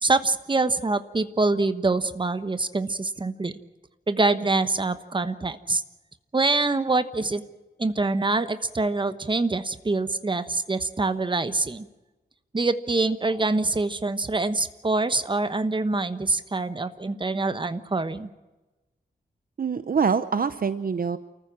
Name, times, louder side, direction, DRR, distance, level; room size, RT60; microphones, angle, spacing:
voice 1, 0.0-3.5 4.1-5.8 6.3-7.4 7.8-11.9 12.5-18.3, right 3 dB, 30° right, 11 dB, 1.2 m, -25 dB
voice 2, 19.6-21.2, right 6 dB, 55° right, 13 dB, 0.8 m, -24 dB
29.0 x 14.5 x 7.5 m, 1.1 s
wide cardioid pair, 120°, 18 cm